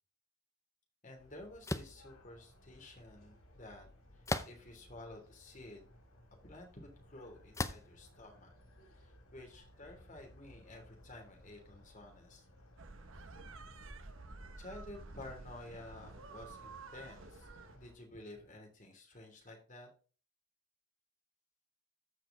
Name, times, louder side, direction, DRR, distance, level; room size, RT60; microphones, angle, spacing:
voice 1, 1.0-3.9 4.1-6.0 6.4-8.5 8.9-12.5 13.3-13.4 14.6-17.5 17.7-19.9, left 1 dB, 35° left, 1 dB, 3.0 m, -52 dB
sound 1, 1.2-17.9, left 1 dB, 80° left, 5.6 m, -60 dB
sound 2, 1.7-2.0 4.3-4.8 5.5-5.6 7.5-8.0, left 2 dB, 15° left, 0.6 m, -36 dB
sound 3, 12.8-17.8, right 3 dB, 65° right, 1.0 m, -51 dB
14.0 x 5.1 x 3.7 m, 0.37 s
head